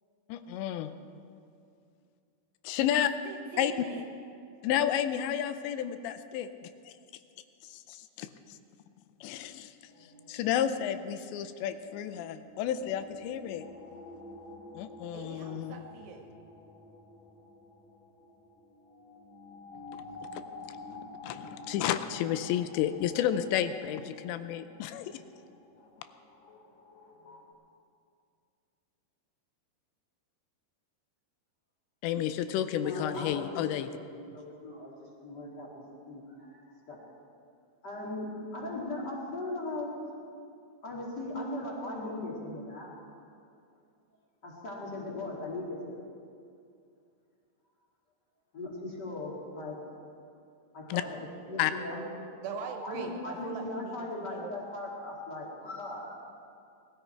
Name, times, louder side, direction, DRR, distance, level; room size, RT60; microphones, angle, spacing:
voice 1, 0.3-0.9 2.6-3.1 3.6-3.9 4.6-6.9 7.6-8.3 9.2-9.7 10.3-13.7 14.7-15.8 19.9-20.0 20.3-20.4 21.2-25.2 32.0-33.9 50.9-51.0 51.6-51.7, left 10 dB, 85° left, 11 dB, 2.8 m, -31 dB
voice 2, 3.2-4.0 15.1-16.3 52.4-54.5, right 6 dB, 75° right, 3 dB, 2.8 m, -42 dB
sound 1, 9.9-27.5, left 2 dB, 55° left, 3.1 m, -50 dB
voice 3, 32.7-34.9 35.2-36.6 36.9-37.1 37.8-39.9 40.8-42.9 44.4-46.0 48.5-49.8 50.7-52.1 52.8-56.1, left 2 dB, 30° left, -4 dB, 2.1 m, -38 dB
20.0 x 13.5 x 4.5 m, 2.4 s
omnidirectional pair, 5.2 m